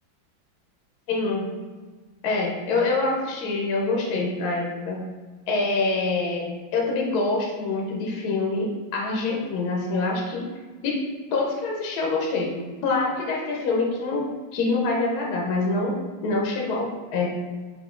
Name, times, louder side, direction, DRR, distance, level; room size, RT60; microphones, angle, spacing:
voice 1, 1.1-1.5 2.2-5.0 5.5-6.4 6.7-10.5 10.8-11.0 11.3-12.5 12.8-14.3 14.5-15.9 16.2-17.3, left 3 dB, 60° left, -1 dB, 1.2 m, -25 dB
4.9 x 2.7 x 3.7 m, 1.4 s
omnidirectional pair, 2.2 m